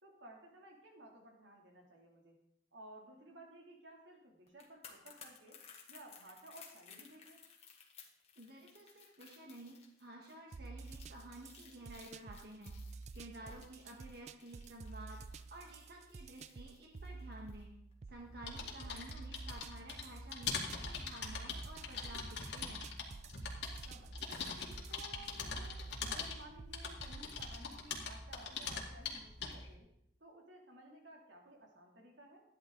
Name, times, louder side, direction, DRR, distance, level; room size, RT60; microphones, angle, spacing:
voice 1, 0.0-2.4 2.7-5.6 5.9-7.4 13.4-13.6 18.6-19.0 23.8-24.6 24.9-29.9 30.2-32.4, right 1 dB, 90° right, 0 dB, 2.9 m, -57 dB
sound 1, 4.5-17.6 17.9-18.1, left 6 dB, 35° left, 1.9 m, -59 dB
voice 2, 8.4-17.7 18.1-22.8, right 1 dB, 60° right, 0 dB, 1.7 m, -52 dB
sound 2, 10.5-27.7, right 4 dB, 40° right, 0.3 m, -51 dB
sound 3, 18.2-29.7, left 5 dB, 75° left, 2.2 m, -43 dB
14.0 x 10.5 x 3.9 m, 0.75 s
head